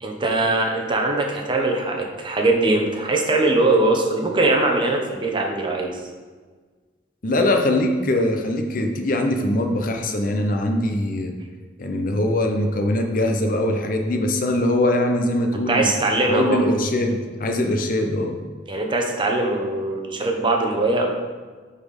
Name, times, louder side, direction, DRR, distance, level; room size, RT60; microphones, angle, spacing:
voice 1, 0.0-6.0 15.7-16.7 18.7-21.1, right 2 dB, 25° right, 2 dB, 0.9 m, -21 dB
voice 2, 7.2-11.3 11.8-15.9 16.2-18.4, left 1 dB, 50° left, 4 dB, 0.8 m, -22 dB
7.9 x 4.3 x 5.4 m, 1.5 s
head